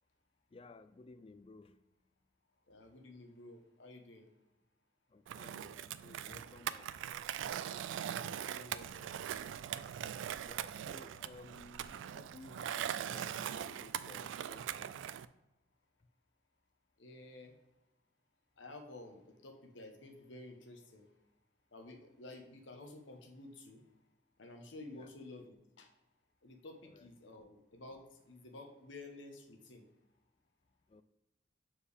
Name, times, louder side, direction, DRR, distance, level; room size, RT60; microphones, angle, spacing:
voice 1, 0.5-1.8 5.1-6.9 10.5-15.0 24.9-25.1 26.8-27.1 30.9-31.0, left 3 dB, 30° left, 12 dB, 0.3 m, -56 dB
voice 2, 2.7-4.3 8.0-9.1 17.0-17.5 18.6-21.1 21.7-23.8 24.4-25.9 26.4-29.8, left 2 dB, 85° left, 4 dB, 1.1 m, -52 dB
Skateboard, 5.3-15.3, right 9 dB, 85° right, 0.3 m, -41 dB
7.0 x 4.4 x 3.4 m, 0.95 s
head